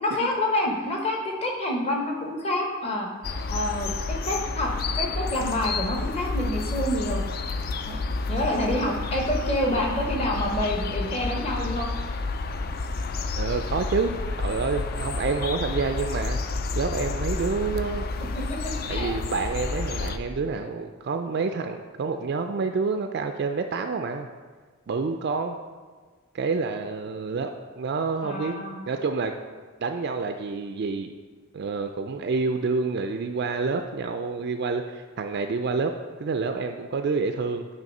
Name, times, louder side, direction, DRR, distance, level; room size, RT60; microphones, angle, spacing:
voice 1, 0.0-3.1 3.5-7.2 7.8-8.0 8.3-11.9 18.5-18.6 18.9-19.1 28.2-28.8, left 1 dB, 30° left, 0 dB, 1.0 m, -27 dB
sound 1, 3.2-20.2, left 3 dB, 45° left, 0.3 m, -30 dB
voice 2, 13.4-16.4 16.8-18.1 18.9-24.3 24.9-25.6 26.3-28.6 28.9-29.3 29.8-31.1 31.5-35.9 36.2-37.7, right 4 dB, 50° right, 6 dB, 0.3 m, -28 dB
9.1 x 3.1 x 5.4 m, 1.4 s
head